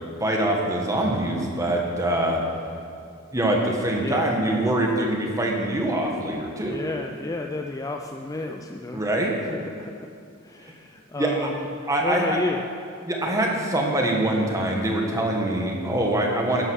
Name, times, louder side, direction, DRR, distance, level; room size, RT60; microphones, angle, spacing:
voice 1, 0.2-2.4 3.3-6.8 8.9-9.3 11.1-11.5 11.9-12.4 13.0-16.6, right 1 dB, 15° right, 0 dB, 1.6 m, -24 dB
voice 2, 4.0-4.4 6.6-9.0 9.4-10.1 10.4-11.7 12.0-12.6, left 2 dB, 15° left, 3 dB, 0.4 m, -32 dB
11.0 x 11.0 x 6.4 m, 2.4 s
head